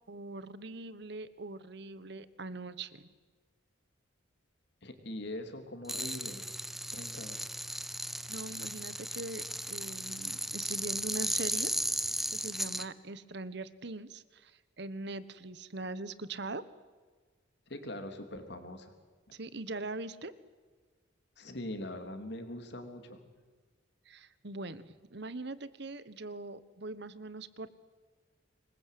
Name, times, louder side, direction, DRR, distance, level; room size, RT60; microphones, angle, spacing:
voice 1, 0.1-3.1 8.3-11.7 12.3-16.6 19.3-20.3 24.0-27.7, right 2 dB, 60° right, 15 dB, 1.3 m, -42 dB
voice 2, 4.8-6.4 6.9-7.4 17.7-18.9 21.4-23.2, left 1 dB, 60° left, 6 dB, 3.4 m, -42 dB
sound 1, 5.9-12.8, equal, ahead, 0.7 m, -36 dB
26.5 x 21.5 x 8.6 m, 1.4 s
head